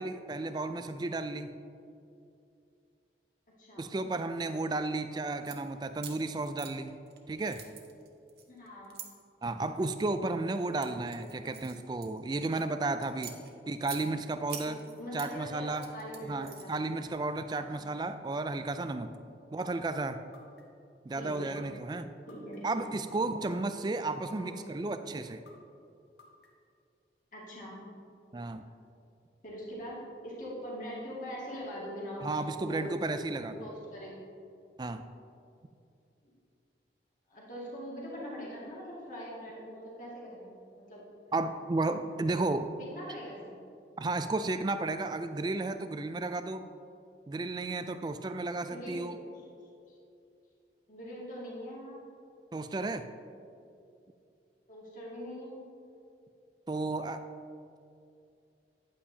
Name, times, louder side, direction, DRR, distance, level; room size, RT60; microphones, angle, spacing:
voice 1, 0.0-1.6 3.8-6.9 7.3-7.6 9.4-13.4 13.7-14.8 15.1-15.9 16.2-19.1 19.5-20.2 21.0-22.1 22.6-25.4 28.3-28.6 32.2-33.7 34.8-35.0 41.3-42.7 44.0-46.6 47.3-49.1 52.5-53.1 56.7-57.2, right 2 dB, 25° right, 10 dB, 0.3 m, -33 dB
voice 2, 3.6-3.9 8.5-9.0 14.6-16.8 17.5-18.1 21.1-21.6 22.3-22.9 24.4-24.5 27.3-27.8 29.4-33.0 33.6-34.2 36.2-36.3 37.3-41.0 42.8-43.6 48.6-49.2 50.9-52.1 54.7-55.6, equal, 45° left, -6 dB, 2.0 m, -42 dB
sound 1, 5.3-5.6 6.0-7.2 7.5-9.1 9.7-10.1 10.5-12.6 13.0-14.0 14.5-15.3 15.7-16.9, right 9 dB, 65° right, 0.8 m, -45 dB
sound 2, 19.6-19.7 20.3-20.9 21.6-21.7 22.3-22.8 23.5-23.6 24.2-24.8 25.5-25.6 26.2-26.7, left 4 dB, 75° left, 1.1 m, -56 dB
10.0 x 8.4 x 2.8 m, 2.5 s
head